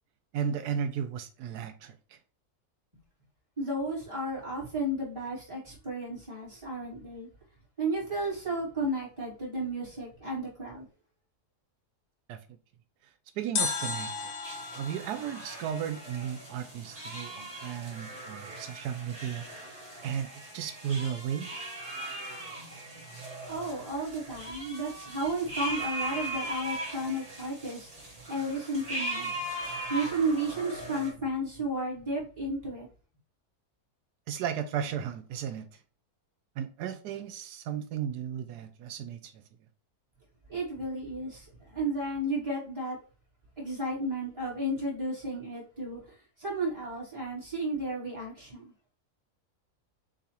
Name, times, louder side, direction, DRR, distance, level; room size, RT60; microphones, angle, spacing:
voice 1, 0.3-2.2 12.3-12.6 13.4-14.3 14.8-19.7 20.0-21.5 34.3-35.7 36.6-39.4, right 8 dB, 90° right, 1.2 m, -35 dB
voice 2, 3.6-7.3 7.8-10.9 23.5-29.3 29.9-32.9 40.5-43.0 43.6-46.0 46.4-48.7, right 1 dB, 20° right, 2.3 m, -33 dB
sound 1, 13.6-16.6 16.9-17.0, left 5 dB, 70° left, 0.5 m, -35 dB
sound 2, 14.4-31.1, right 1 dB, 35° right, 1.8 m, -39 dB
6.5 x 2.8 x 2.9 m
omnidirectional pair, 1.7 m